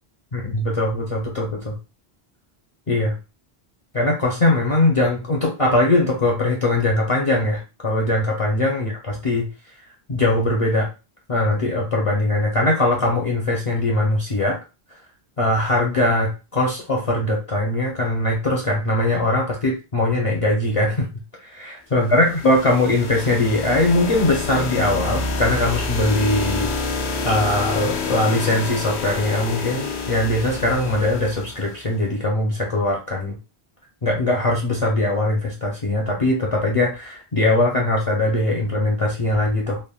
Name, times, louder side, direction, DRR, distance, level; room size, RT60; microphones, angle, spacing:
voice 1, 0.3-1.8 2.9-3.1 3.9-9.5 10.1-10.9 11.3-14.6 15.4-21.1 21.4-26.7 27.2-33.4 34.0-39.8, left 1 dB, 40° left, -1 dB, 0.5 m, -21 dB
sound 1, 22.0-31.9, left 3 dB, 85° left, 0.9 m, -28 dB
3.4 x 2.1 x 2.3 m, 0.30 s
omnidirectional pair, 1.1 m